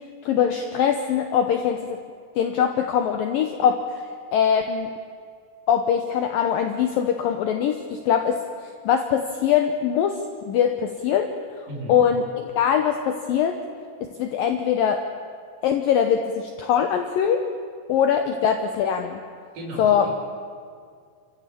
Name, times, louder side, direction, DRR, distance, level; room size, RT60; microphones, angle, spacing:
voice 1, 0.2-2.0 2.4-4.0 4.3-4.9 5.7-10.2 10.5-11.3 11.9-13.6 14.1-15.0 15.6-17.5 17.9-19.2 19.8-20.1, left 8 dB, 80° left, 5 dB, 2.0 m, -22 dB
voice 2, 11.7-12.0 19.5-20.1, equal, 45° right, -2 dB, 5.9 m, -35 dB
29.5 x 14.5 x 8.6 m, 2.2 s
omnidirectional pair, 5.5 m